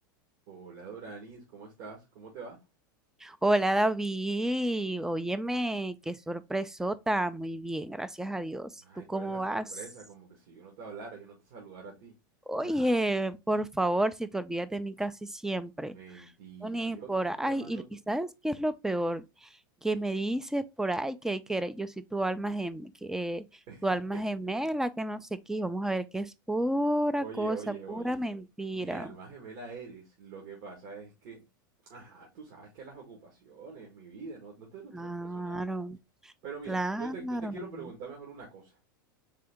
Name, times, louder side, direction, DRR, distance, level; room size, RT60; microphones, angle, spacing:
voice 1, 0.5-2.6 8.8-12.1 12.6-12.9 15.9-17.1 17.4-17.8 23.7-23.9 24.1-24.2 27.2-28.2 28.7-31.4 31.8-35.6 36.4-38.8, right 5 dB, 60° right, 1.5 m, -45 dB
voice 2, 3.2-8.8 9.1-9.7 12.5-16.2 16.6-19.5 19.8-23.4 23.8-29.1 34.9-36.0 36.2-36.3 36.7-37.6, right 1 dB, 5° right, 0.4 m, -31 dB
3.8 x 3.5 x 3.3 m
hypercardioid pair, 95°, 12 cm